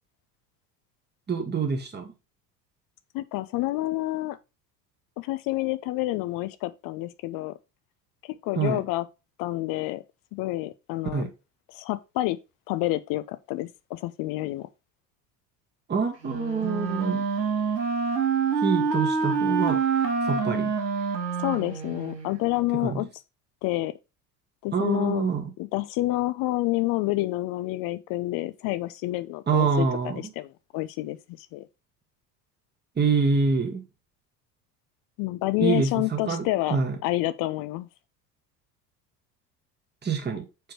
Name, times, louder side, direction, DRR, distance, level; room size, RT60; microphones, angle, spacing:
voice 1, 1.3-2.1 8.5-8.8 11.1-11.3 15.9-17.2 18.6-19.8 20.3-20.7 22.8-23.1 24.7-25.5 29.5-30.3 33.0-33.8 35.6-36.9 40.0-40.5, right 5 dB, 20° right, 1.5 m, -26 dB
voice 2, 3.1-4.4 5.2-7.6 8.4-9.1 9.4-10.0 10.3-11.3 11.7-12.4 12.7-14.7 21.4-23.1 23.6-23.9 24.6-25.3 25.6-31.7 35.2-37.9, left 18 dB, 45° left, 0.7 m, -28 dB
Wind instrument woodwind instrument, 16.2-22.4, right 5 dB, 85° right, 1.2 m, -26 dB
5.2 x 4.4 x 4.5 m
figure-of-eight pair, 70°, 49 cm